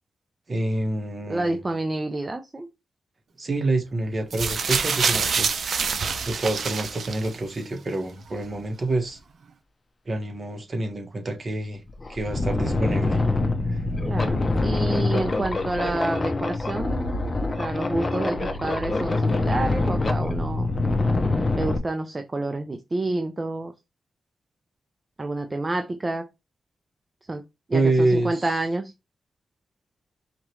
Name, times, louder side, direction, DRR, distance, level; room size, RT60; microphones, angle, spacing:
voice 1, 0.5-1.6 3.4-5.6 6.3-9.2 10.0-11.8 12.1-13.2 13.7-13.8 27.7-28.5, right 2 dB, 50° right, 1.4 m, -27 dB
voice 2, 1.3-2.7 14.0-17.2 17.6-20.7 21.6-23.7 25.2-26.3 27.3-27.4 27.7-28.9, right 2 dB, 30° right, 0.6 m, -29 dB
sound 1, 4.3-7.6 8.4-8.5, right 5 dB, 70° right, 0.6 m, -26 dB
sound 2, 11.4-11.5 11.9-21.8, left 2 dB, 35° left, 0.9 m, -25 dB
5.0 x 3.1 x 3.1 m
cardioid pair, 60°, 0 cm